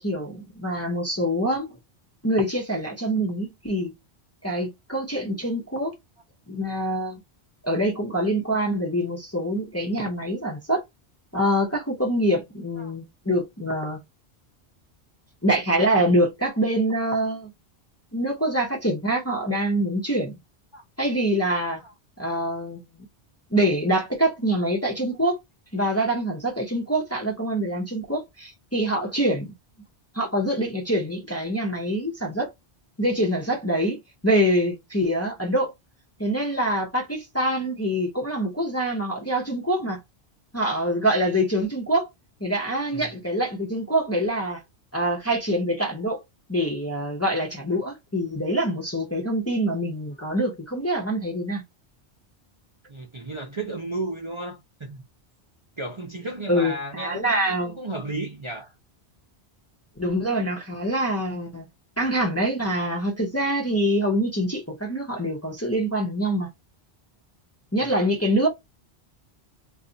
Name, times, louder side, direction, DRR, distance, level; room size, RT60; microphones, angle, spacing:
voice 1, 0.0-1.7 2.2-3.9 4.4-6.0 6.5-7.2 7.6-10.8 11.3-14.0 15.4-17.5 18.1-20.3 21.0-21.8 22.2-23.1 23.5-25.4 25.7-29.5 30.1-32.5 33.0-34.0 34.2-35.7 36.2-40.0 40.5-42.1 42.4-44.6 44.9-46.2 46.5-51.6 56.5-57.8 60.0-61.6 62.0-66.5 67.7-68.5, right 1 dB, 15° left, 0.6 m, -25 dB
voice 2, 52.9-55.1 55.8-58.7 67.8-68.1, right 2 dB, 35° right, 0.6 m, -34 dB
2.5 x 2.4 x 3.9 m
omnidirectional pair, 1.1 m